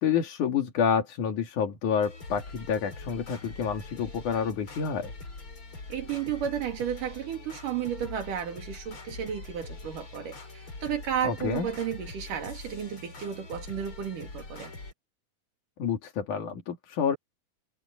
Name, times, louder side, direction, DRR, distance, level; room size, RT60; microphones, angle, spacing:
voice 1, 0.0-5.1 11.2-11.7 15.8-17.2, left 7 dB, 65° left, 3.8 m, -28 dB
sound 1, 2.0-14.9, left 3 dB, 40° left, 5.7 m, -43 dB
voice 2, 5.9-14.7, right 9 dB, 75° right, 4.1 m, -33 dB
omnidirectional pair, 3.7 m